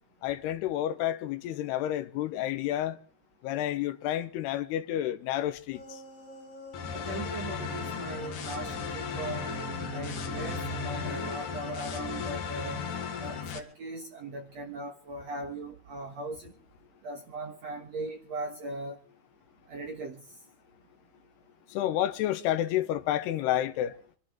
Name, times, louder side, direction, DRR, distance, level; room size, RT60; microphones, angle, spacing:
voice 1, 0.2-3.0 3.4-6.0 21.7-24.0, left 12 dB, 75° left, 3.0 m, -30 dB
sound 1, 5.7-7.1 7.4-11.1, right 2 dB, 10° left, 5.2 m, -43 dB
sound 2, 6.7-13.6, left 6 dB, 55° left, 2.8 m, -35 dB
voice 2, 7.1-9.5 9.9-12.9 13.2-16.5 17.0-19.0 19.7-20.3, right 2 dB, 60° right, 1.8 m, -39 dB
26.0 x 12.0 x 3.7 m
omnidirectional pair, 5.0 m